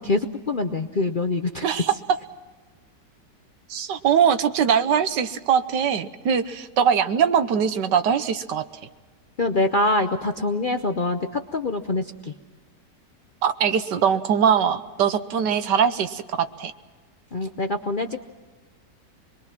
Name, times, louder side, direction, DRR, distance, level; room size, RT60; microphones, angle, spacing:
voice 1, 0.0-1.6 9.4-12.3 17.3-18.3, left 2 dB, 45° left, 6 dB, 0.7 m, -25 dB
voice 2, 1.6-1.9 3.7-8.6 13.4-16.7, right 8 dB, 80° right, 10 dB, 1.6 m, -22 dB
26.5 x 22.0 x 6.0 m, 1.3 s
omnidirectional pair, 1.9 m